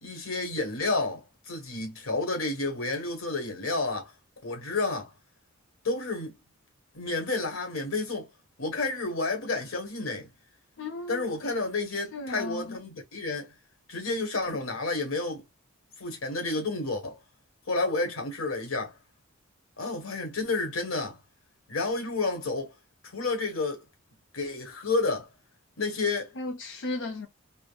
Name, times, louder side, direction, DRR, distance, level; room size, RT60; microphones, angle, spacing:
voice 1, 0.0-4.1 4.4-5.1 5.8-6.3 6.9-8.3 8.6-10.3 11.1-13.5 13.9-15.4 16.0-17.2 17.7-19.0 19.8-21.2 21.7-22.7 23.0-23.8 24.3-25.3 25.8-26.3, left 3 dB, 90° left, 1.2 m, -30 dB
voice 2, 10.8-11.2 12.1-12.8 26.4-27.3, left 2 dB, 65° left, 0.6 m, -35 dB
3.6 x 2.0 x 2.3 m
head